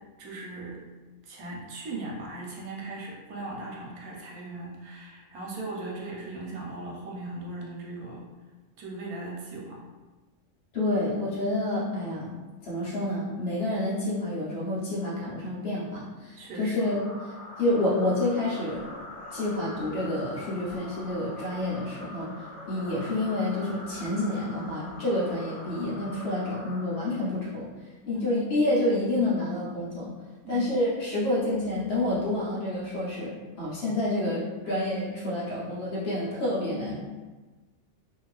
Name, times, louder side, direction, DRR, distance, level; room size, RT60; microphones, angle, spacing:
voice 1, 0.2-0.8 1.2-8.2 8.8-9.8 16.4-16.8 28.1-28.4 30.4-30.7, right 2 dB, 80° right, -2 dB, 1.2 m, -38 dB
voice 2, 10.7-12.4 12.6-18.8 19.3-22.3 22.7-27.7 28.1-30.1 30.5-37.0, left 1 dB, 55° left, -7 dB, 0.9 m, -28 dB
sound 1, 16.8-27.5, left 1 dB, 30° left, 1.1 m, -43 dB
2.7 x 2.5 x 3.1 m, 1.2 s
omnidirectional pair, 1.5 m